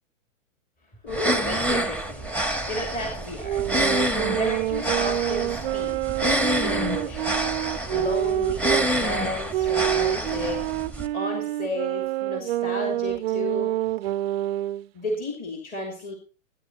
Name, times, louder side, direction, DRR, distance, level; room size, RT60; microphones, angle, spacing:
voice 1, 1.0-2.3 2.6-3.7 4.3-6.1 6.6-7.4 7.9-10.8 11.1-13.7 14.9-16.1, left 1 dB, 20° left, 1 dB, 2.9 m, -33 dB
sound 1, 1.1-11.1, right 1 dB, 5° left, 1.3 m, -27 dB
sound 2, 3.4-8.9 9.5-14.9, right 13 dB, 50° right, 0.5 m, -27 dB
18.5 x 10.5 x 2.9 m, 0.33 s
hypercardioid pair, 120°, 40 cm